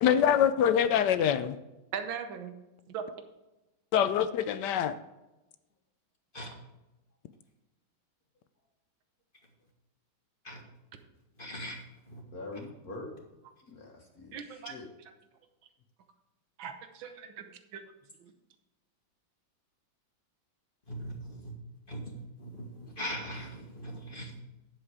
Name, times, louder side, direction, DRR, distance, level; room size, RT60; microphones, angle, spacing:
voice 1, 0.0-1.6 3.9-4.9, left 9 dB, 70° left, 12 dB, 1.1 m, -24 dB
voice 2, 1.9-2.5 2.9-3.2 14.3-14.8 16.6-17.5 17.7-17.8 18.2-18.3, right 7 dB, 85° right, 7 dB, 1.7 m, -39 dB
voice 3, 11.4-11.8 12.1-12.2 20.9-21.5 21.9-22.1 22.4-24.3, equal, 30° left, 0 dB, 1.7 m, -40 dB
voice 4, 12.3-13.1 13.7-14.9, left 2 dB, 50° left, -1 dB, 1.9 m, -44 dB
9.9 x 7.5 x 4.8 m, 1.0 s
omnidirectional pair, 2.1 m